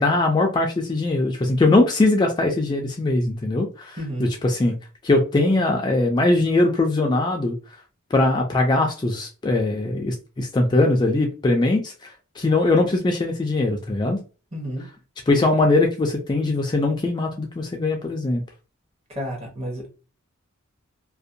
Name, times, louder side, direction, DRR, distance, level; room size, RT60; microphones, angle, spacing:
voice 1, 0.0-4.8 5.0-7.5 8.1-14.2 15.3-18.4, left 2 dB, 20° left, 0.3 m, -21 dB
voice 2, 4.0-4.3 14.5-14.9 19.1-19.9, equal, 30° right, 1.0 m, -31 dB
2.5 x 2.1 x 2.6 m
head